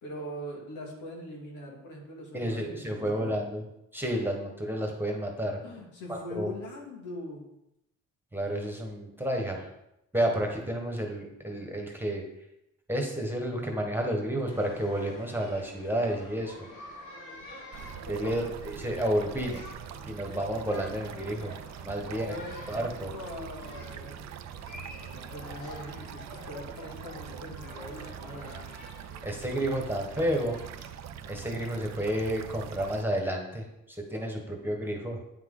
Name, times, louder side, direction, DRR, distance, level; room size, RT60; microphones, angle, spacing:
voice 1, 0.0-3.4 5.6-7.4 18.0-18.4 22.0-22.6 23.1-24.3 25.1-28.7, left 1 dB, 90° left, 0 dB, 2.2 m, -42 dB
voice 2, 2.3-3.6 3.9-5.6 6.1-6.5 8.3-9.7 10.1-12.3 12.9-16.7 18.1-18.4 18.7-19.6 20.0-21.5 21.9-22.3 22.7-23.1 29.2-30.6 31.3-35.2, right 1 dB, 5° right, 1 dB, 1.4 m, -31 dB
sound 1, 14.5-32.3, left 1 dB, 75° left, 2.0 m, -48 dB
sound 2, 17.7-33.0, right 10 dB, 60° right, 0.5 m, -43 dB
9.0 x 6.0 x 3.9 m, 0.86 s
cardioid pair, 90°, 30 cm